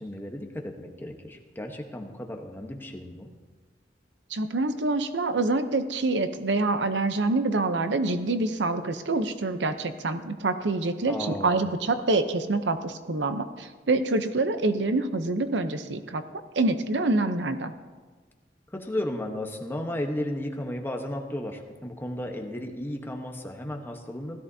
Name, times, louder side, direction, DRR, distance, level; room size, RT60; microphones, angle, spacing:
voice 1, 0.0-3.3 11.1-11.6 18.7-24.4, left 1 dB, 15° left, 3 dB, 1.1 m, -34 dB
voice 2, 4.3-16.2 16.6-17.7, right 2 dB, 80° right, 10 dB, 0.7 m, -26 dB
16.5 x 13.5 x 2.8 m, 1.4 s
head